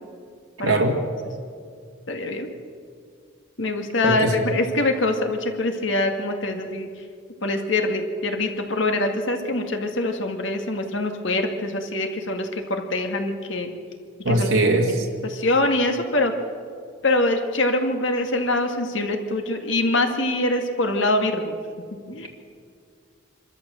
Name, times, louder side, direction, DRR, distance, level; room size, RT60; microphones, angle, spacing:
voice 1, 0.6-0.9 4.0-4.3 14.3-15.1, right 2 dB, 70° right, 0 dB, 2.1 m, -20 dB
voice 2, 2.1-2.5 3.6-6.9 7.4-13.7 14.3-14.5 14.8-16.3 17.0-21.6 22.1-22.3, left 2 dB, 60° left, 4 dB, 2.1 m, -24 dB
26.0 x 13.5 x 7.7 m, 2.2 s
head